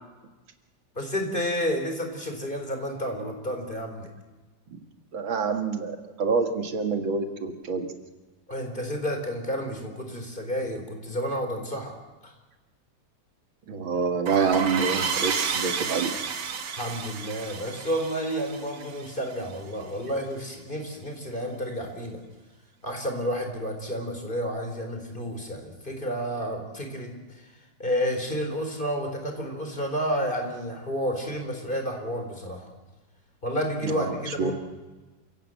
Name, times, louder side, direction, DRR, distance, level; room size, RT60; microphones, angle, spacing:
voice 1, 1.0-4.1 8.5-12.0 12.2-12.3 16.8-22.2 22.8-27.1 27.8-32.7 33.4-34.5, equal, 25° left, 4 dB, 4.1 m, -30 dB
voice 2, 5.1-7.9 13.7-16.2 33.8-34.5, right 5 dB, 85° right, 6 dB, 2.7 m, -27 dB
sound 1, 14.3-19.6, right 6 dB, 60° right, 2.1 m, -31 dB
28.5 x 17.0 x 7.7 m, 1.2 s
omnidirectional pair, 2.1 m